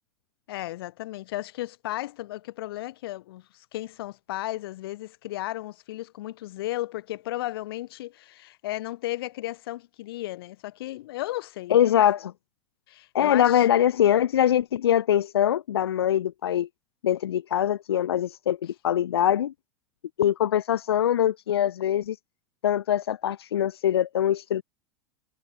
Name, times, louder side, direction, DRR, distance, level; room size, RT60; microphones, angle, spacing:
voice 1, 0.5-12.0 12.9-13.7, left 16 dB, 70° left, 6.4 m, -34 dB
voice 2, 11.7-12.3 13.1-16.7 17.0-19.5 20.2-22.2 22.6-24.6, left 10 dB, 85° left, 0.4 m, -23 dB
hypercardioid pair, 90°, 13 cm